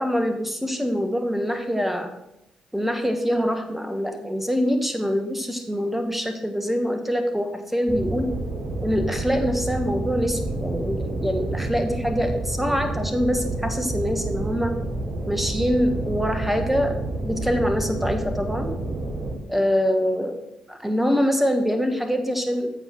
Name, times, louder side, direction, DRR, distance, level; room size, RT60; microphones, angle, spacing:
voice 1, 0.0-2.1 2.7-8.3 8.8-14.7 15.3-17.0 17.2-18.7 19.5-20.4 20.7-22.7, equal, 5° right, 6 dB, 1.3 m, -24 dB
sound 1, 7.9-19.4, right 2 dB, 55° right, 1.4 m, -29 dB
7.7 x 5.8 x 4.6 m, 0.85 s
figure-of-eight pair, 40°, 3 cm